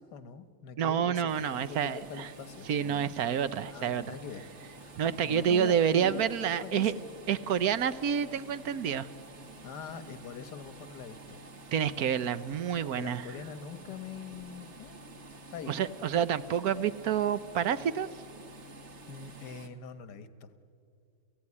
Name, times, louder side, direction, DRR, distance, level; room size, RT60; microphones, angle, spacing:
voice 1, 0.0-3.1 3.7-4.5 4.8-5.0 5.2-7.1 9.6-11.4 12.8-15.0 15.5-15.8 19.1-20.5, left 7 dB, 85° left, 11 dB, 1.7 m, -44 dB
voice 2, 0.8-2.3 2.7-4.1 5.0-6.9 7.3-9.1 11.7-13.2 15.7-18.1, right 8 dB, 70° right, 13 dB, 1.2 m, -28 dB
sound 1, 1.3-19.7, right 2 dB, 45° right, 1.6 m, -50 dB
30.0 x 16.0 x 9.7 m, 2.5 s
omnidirectional pair, 1.7 m